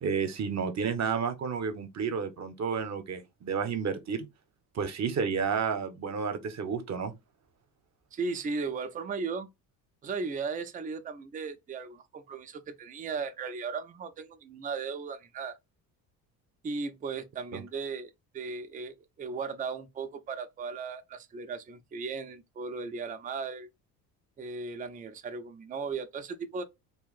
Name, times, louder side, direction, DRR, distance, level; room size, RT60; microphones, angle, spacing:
voice 1, 0.0-4.3 4.7-7.1 17.5-17.6, right 6 dB, 35° right, 0.8 m, -31 dB
voice 2, 8.1-9.5 10.0-15.6 16.6-23.7 24.4-26.6, right 4 dB, 15° right, 0.5 m, -36 dB
2.8 x 2.4 x 3.9 m
hypercardioid pair, 55°, 49 cm